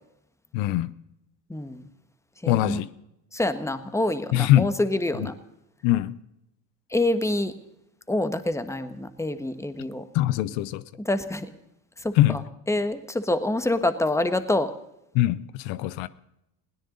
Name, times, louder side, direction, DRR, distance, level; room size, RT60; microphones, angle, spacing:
voice 1, 0.5-0.9 2.5-2.9 4.3-4.8 5.1-5.3 5.8-6.2 10.1-10.8 12.1-12.4 15.1-16.1, left 14 dB, 85° left, 0.8 m, -22 dB
voice 2, 1.5-1.9 2.4-2.8 3.3-5.3 6.9-7.5 8.1-10.0 11.0-11.5 12.0-12.1 12.7-14.7, left 1 dB, 5° left, 1.4 m, -26 dB
21.0 x 16.5 x 3.9 m
cardioid pair, 100°, 44 cm